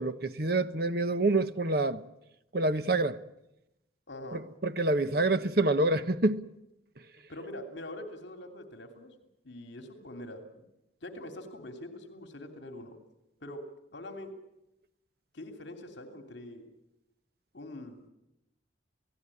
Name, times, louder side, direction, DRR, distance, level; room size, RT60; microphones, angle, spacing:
voice 1, 0.0-2.0 2.5-3.2 4.3-6.4, right 2 dB, 50° right, 1.1 m, -27 dB
voice 2, 4.1-4.4 7.3-9.1 9.4-10.7 11.0-13.0 13.4-13.6 13.9-14.3 15.3-16.7 17.5-18.0, left 1 dB, 65° left, 3.0 m, -44 dB
29.5 x 17.0 x 9.9 m
head